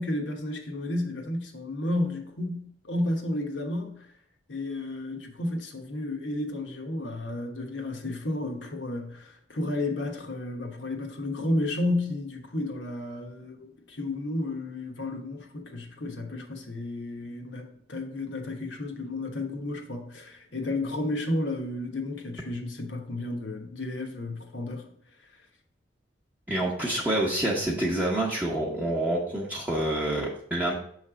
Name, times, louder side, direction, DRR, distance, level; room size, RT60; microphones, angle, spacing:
voice 1, 0.0-4.1 4.5-24.9, left 1 dB, 75° left, 1.1 m, -32 dB
voice 2, 26.5-30.7, right 1 dB, 10° right, 0.8 m, -27 dB
6.6 x 3.2 x 4.9 m
head